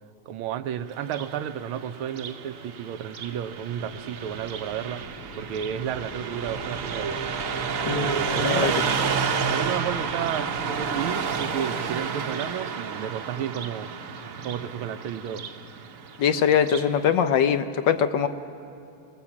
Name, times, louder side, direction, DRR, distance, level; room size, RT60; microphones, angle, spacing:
voice 1, 0.3-7.2 7.8-8.8 9.5-13.9 14.4-15.5, right 9 dB, 80° right, 11 dB, 1.5 m, -32 dB
Car passing by, 1.0-16.9, right 5 dB, 50° right, 1.0 m, -31 dB
sound 1, 3.4-12.8, equal, 50° left, 4.2 m, -43 dB
voice 2, 7.9-8.7 16.2-18.3, left 8 dB, 70° left, 9 dB, 1.2 m, -22 dB
24.0 x 18.5 x 7.2 m, 2.8 s
omnidirectional pair, 2.3 m